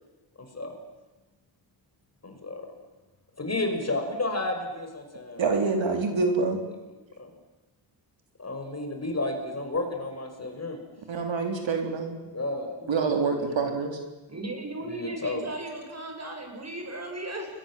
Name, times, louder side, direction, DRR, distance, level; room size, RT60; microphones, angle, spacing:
voice 1, 0.4-0.7 2.2-2.7 3.4-5.6 7.2-7.3 8.4-10.8 12.2-13.7 14.8-15.4, left 2 dB, 30° left, 4 dB, 5.9 m, -32 dB
voice 2, 5.4-6.6 11.1-12.2 12.9-14.0, right 4 dB, 70° right, 4 dB, 3.9 m, -26 dB
voice 3, 14.3-17.5, right 2 dB, 35° right, 3 dB, 7.5 m, -36 dB
29.5 x 22.5 x 7.7 m, 1.1 s
cardioid pair, 95°, 47 cm